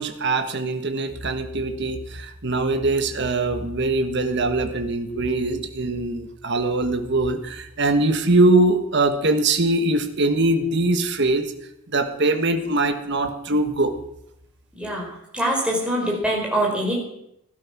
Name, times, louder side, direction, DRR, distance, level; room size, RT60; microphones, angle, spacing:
voice 1, 0.0-11.5 11.9-13.9, right 2 dB, 55° right, 7 dB, 1.4 m, -22 dB
voice 2, 14.7-15.0 15.3-17.0, right 1 dB, 5° right, -2 dB, 4.5 m, -23 dB
15.5 x 12.0 x 6.0 m, 0.78 s
head